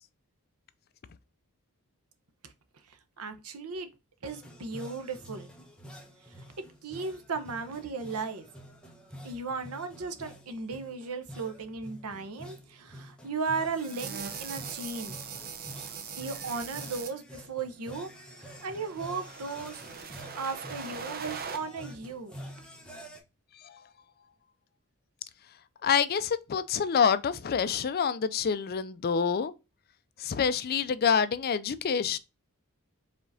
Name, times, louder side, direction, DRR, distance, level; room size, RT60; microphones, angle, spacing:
voice 1, 3.2-3.9 4.2-5.5 6.8-8.4 9.2-15.2 16.2-18.1 18.4-19.8 20.4-22.4, right 4 dB, 85° right, 0.8 m, -36 dB
sound 1, 4.3-23.2, equal, 5° left, 0.9 m, -48 dB
sound 2, 13.8-17.1 18.2-21.6, right 6 dB, 45° right, 0.7 m, -41 dB
voice 2, 25.8-29.5 30.2-32.2, left 6 dB, 45° left, 0.4 m, -27 dB
5.0 x 3.7 x 2.6 m
head